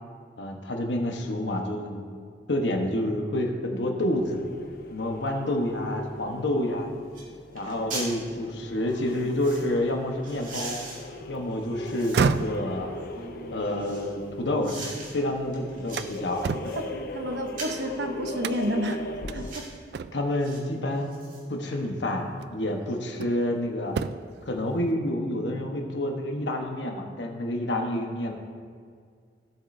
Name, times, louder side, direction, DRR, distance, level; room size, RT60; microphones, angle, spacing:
voice 1, 0.4-2.0 2.5-4.4 4.9-6.9 7.5-10.8 11.3-12.9 13.5-14.8 15.1-16.8 20.1-21.1 21.5-24.0 24.4-28.3, left 1 dB, 85° left, 2 dB, 1.1 m, -28 dB
sound 1, 4.1-19.8, left 2 dB, 55° left, 0.7 m, -40 dB
sound 2, 6.6-6.7 7.1-7.3 7.5-8.1 8.9-9.7 10.2-12.5 13.0-14.1 14.6-15.1 15.5-16.8 17.5-17.9 18.5-18.7 19.3-19.7 20.4-20.6 21.0-21.8 22.1-22.2, right 2 dB, 50° right, 2.2 m, -41 dB
voice 2, 9.0-9.3 13.2-13.7 16.7-19.0 19.3-19.6, equal, 80° right, 5 dB, 0.9 m, -32 dB
sound 3, 11.9-15.1 15.5-17.8 18.4-18.9 19.3-19.4 19.9-20.4 21.7-21.8 22.4-23.5 23.8-24.4, right 5 dB, 65° right, 0.3 m, -32 dB
16.0 x 7.4 x 2.7 m, 2.1 s
head